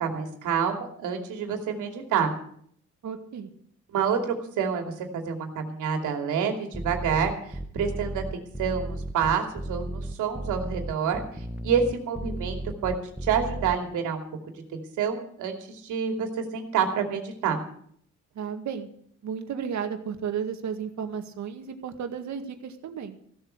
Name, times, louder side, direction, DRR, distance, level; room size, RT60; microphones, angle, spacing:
voice 1, 0.0-2.3 3.9-12.9 13.2-14.2 14.7-17.6, right 7 dB, 85° right, 4 dB, 2.7 m, -28 dB
voice 2, 3.0-3.5 18.4-18.9 19.2-23.2, right 7 dB, 65° right, 7 dB, 1.9 m, -33 dB
sound 1, 6.7-13.7, right 1 dB, 5° right, 1.2 m, -34 dB
15.5 x 7.9 x 8.0 m, 0.65 s
cardioid pair, 90°, 30 cm